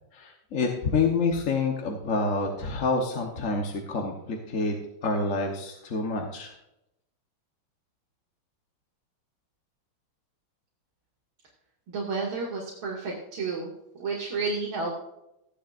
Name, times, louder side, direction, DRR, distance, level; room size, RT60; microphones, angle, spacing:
voice 1, 0.1-4.7 5.0-6.5, left 3 dB, 45° left, 1 dB, 1.3 m, -27 dB
voice 2, 11.9-13.7 13.9-14.9, right 4 dB, 70° right, -4 dB, 2.8 m, -31 dB
15.0 x 11.0 x 2.5 m, 0.84 s
omnidirectional pair, 2.3 m